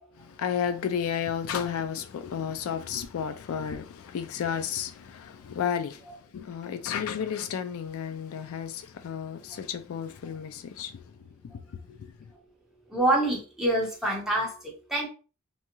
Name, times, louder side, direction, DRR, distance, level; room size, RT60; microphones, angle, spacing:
voice 1, 0.2-11.6 11.9-12.3, left 8 dB, 85° left, 0.3 m, -33 dB
voice 2, 12.9-15.1, right 1 dB, ahead, 0.9 m, -26 dB
2.6 x 2.3 x 2.9 m
head